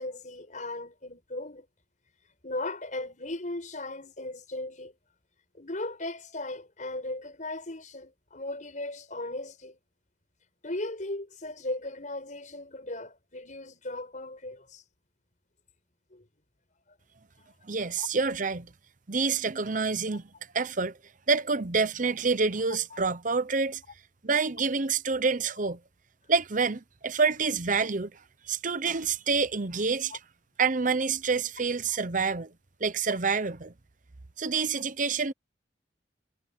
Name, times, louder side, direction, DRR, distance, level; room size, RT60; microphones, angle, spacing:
voice 1, 0.0-1.7 2.4-4.9 5.5-9.8 10.6-14.8 16.1-16.3 18.0-18.1 30.1-30.2, left 2 dB, 45° left, 6.3 m, -37 dB
voice 2, 17.6-18.7 19.1-20.2 20.5-21.0 21.3-23.8 24.2-25.8 26.3-28.1 28.5-30.1 30.6-32.5 32.8-33.7 34.4-35.3, right 4 dB, 45° right, 0.9 m, -27 dB
head